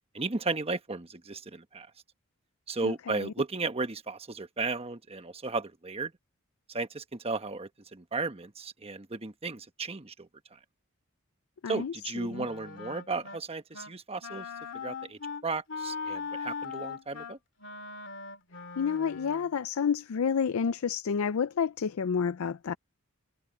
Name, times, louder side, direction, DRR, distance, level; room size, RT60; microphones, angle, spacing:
voice 1, 0.1-1.9 2.7-6.1 6.7-10.6 11.7-14.5 14.7-17.4, right 3 dB, 30° right, 1.1 m, -35 dB
voice 2, 2.8-3.3 11.6-11.9 12.3-12.5 18.8-22.8, left 6 dB, 75° left, 0.4 m, -29 dB
Wind instrument woodwind instrument, 12.3-13.4 13.7-14.0 14.2-19.5, left 5 dB, 60° left, 2.3 m, -40 dB
head